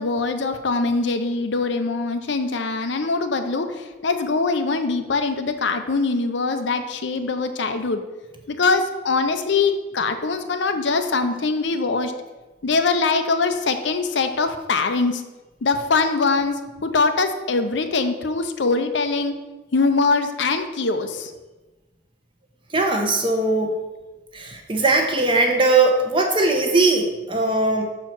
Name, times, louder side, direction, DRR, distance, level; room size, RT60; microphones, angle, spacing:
voice 1, 0.0-8.0 8.5-12.1 12.6-15.2 15.6-19.3 19.7-21.3, left 4 dB, 60° left, 8 dB, 0.6 m, -22 dB
voice 2, 22.7-23.8 24.3-27.9, right 2 dB, 25° right, 3 dB, 0.9 m, -20 dB
6.5 x 4.6 x 6.0 m, 1.1 s
head